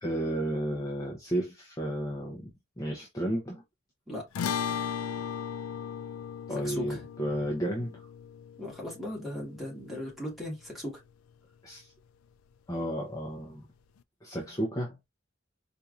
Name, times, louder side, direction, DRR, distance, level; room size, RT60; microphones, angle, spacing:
voice 1, 0.0-2.5 2.8-3.6 6.5-8.1 11.6-11.9 12.7-13.7 14.2-15.0, right 1 dB, 15° left, 0.7 m, -32 dB
voice 2, 4.1-4.5 6.5-7.0 8.6-11.0, left 1 dB, ahead, 1.5 m, -38 dB
sound 1, 4.3-10.9, left 8 dB, 85° left, 0.3 m, -37 dB
4.4 x 2.6 x 2.4 m
head